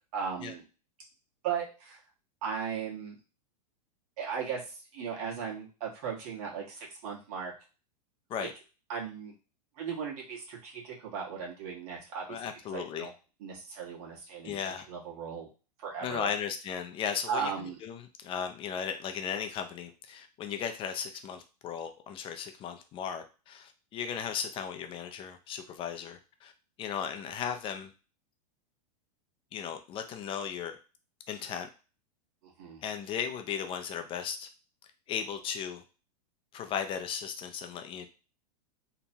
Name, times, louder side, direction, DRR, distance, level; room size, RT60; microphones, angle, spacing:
voice 1, 0.1-0.6 1.4-2.0 2.4-3.2 4.2-7.5 8.4-8.5 8.9-9.3 9.8-12.4 12.7-13.1 13.4-15.5 15.8-16.3 17.3-17.8 32.4-32.8, right 6 dB, 60° right, -3 dB, 1.2 m, -37 dB
voice 2, 12.3-13.1 14.4-14.9 16.0-26.5 26.8-27.9 29.5-30.8 31.3-31.7 32.8-34.5 35.1-35.8 36.5-38.1, left 7 dB, 25° left, 7 dB, 0.4 m, -36 dB
2.9 x 2.1 x 2.7 m, 0.33 s
hypercardioid pair, 120°, 21 cm